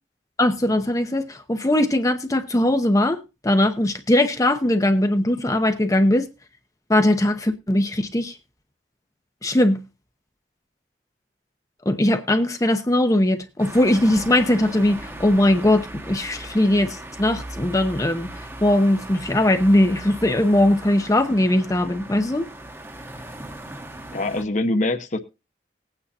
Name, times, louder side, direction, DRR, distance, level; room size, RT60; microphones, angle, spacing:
voice 1, 0.4-6.3 6.9-8.4 9.4-9.8 11.9-18.3 18.6-22.5, left 1 dB, 20° left, 0.8 m, -20 dB
sound 1, 13.6-24.4, right 1 dB, 15° right, 1.0 m, -38 dB
voice 2, 24.1-25.2, left 2 dB, 45° left, 1.0 m, -23 dB
19.5 x 9.1 x 2.8 m
head